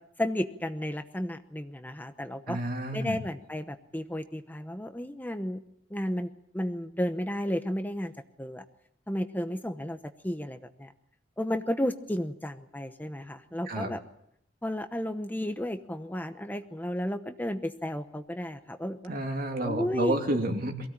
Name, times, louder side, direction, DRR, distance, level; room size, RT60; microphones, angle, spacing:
voice 1, 0.2-2.6 2.9-5.6 5.9-6.3 6.5-8.1 8.4-8.6 9.1-10.0 10.2-10.9 11.4-14.0 14.6-19.1 19.6-20.4, equal, 10° left, 8 dB, 0.9 m, -33 dB
voice 2, 2.5-3.2 13.7-13.9 19.1-20.9, right 1 dB, 50° right, 4 dB, 2.8 m, -30 dB
23.0 x 16.5 x 8.8 m, 0.75 s
head